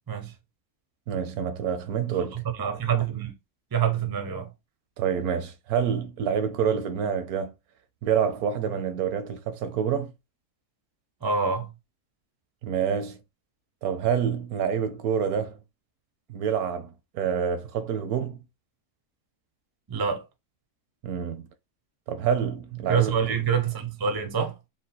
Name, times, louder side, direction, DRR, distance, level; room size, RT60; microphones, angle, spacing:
voice 1, 1.1-2.4 5.0-7.5 8.0-10.1 12.6-13.2 13.8-15.6 16.3-18.4 21.0-21.5 22.1-23.4, right 7 dB, 80° right, 1.1 m, -27 dB
voice 2, 2.3-3.3 3.7-4.5 11.2-11.7 19.9-20.2 22.9-24.5, right 6 dB, 30° right, 0.4 m, -26 dB
3.7 x 2.2 x 4.0 m
omnidirectional pair, 1.6 m